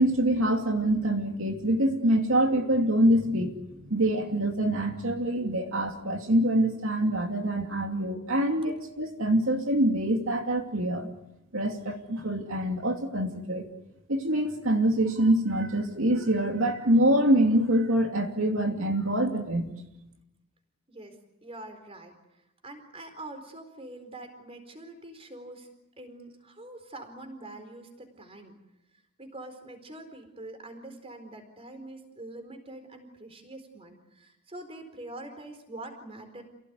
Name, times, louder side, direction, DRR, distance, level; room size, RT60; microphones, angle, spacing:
voice 1, 0.0-3.6 3.8-11.1 11.5-13.7 14.1-19.7, right 1 dB, 75° right, 3 dB, 2.7 m, -25 dB
voice 2, 20.9-22.2 22.6-25.7 26.0-28.6 29.2-36.4, right 2 dB, 25° right, 6 dB, 4.4 m, -44 dB
29.0 x 17.5 x 9.6 m, 0.89 s
head